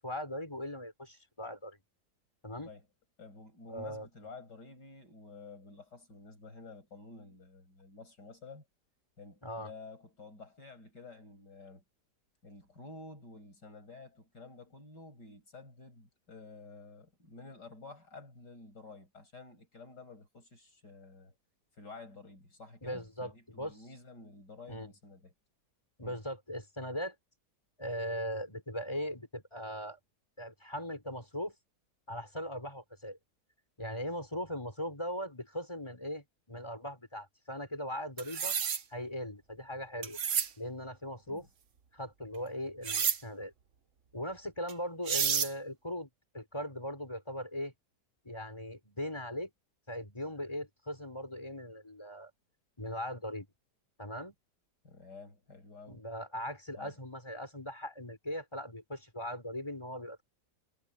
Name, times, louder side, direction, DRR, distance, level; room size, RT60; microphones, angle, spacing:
voice 1, 0.0-1.8 2.4-2.7 3.7-4.1 9.4-9.7 22.8-23.7 24.7-24.9 26.0-27.1 27.8-30.0 30.4-31.5 32.1-33.2 33.8-38.5 38.9-40.2 40.6-41.5 41.9-43.5 44.1-46.1 46.3-47.7 48.2-49.5 49.9-52.3 52.8-53.5 54.0-54.3 55.9-60.2, equal, 15° left, 5.1 m, -39 dB
voice 2, 3.2-8.7 9.2-11.8 12.4-21.4 21.8-25.3 26.0-26.2 41.3-41.5 54.8-56.0 56.8-56.9, left 3 dB, 85° left, 7.4 m, -51 dB
sound 1, 38.2-38.8 40.0-40.5 42.8-43.2 44.7-44.8 45.1-45.5, right 7 dB, 50° right, 1.3 m, -30 dB
omnidirectional pair, 1.8 m